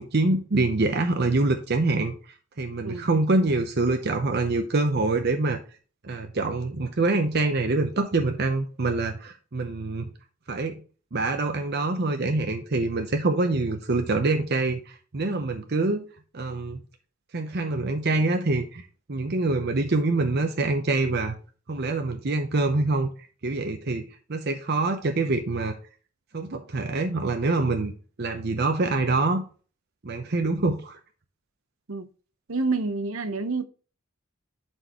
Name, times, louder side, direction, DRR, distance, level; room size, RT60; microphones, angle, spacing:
voice 1, 0.0-2.1 2.6-5.6 6.0-10.1 10.5-10.8 11.1-16.0 16.3-16.8 17.3-18.8 19.1-21.3 21.7-23.1 23.4-25.8 26.3-27.9 28.2-29.4 30.0-31.0, right 2 dB, 50° right, 0.8 m, -25 dB
voice 2, 32.5-33.7, right 3 dB, 90° right, 0.8 m, -28 dB
11.0 x 4.6 x 3.0 m
head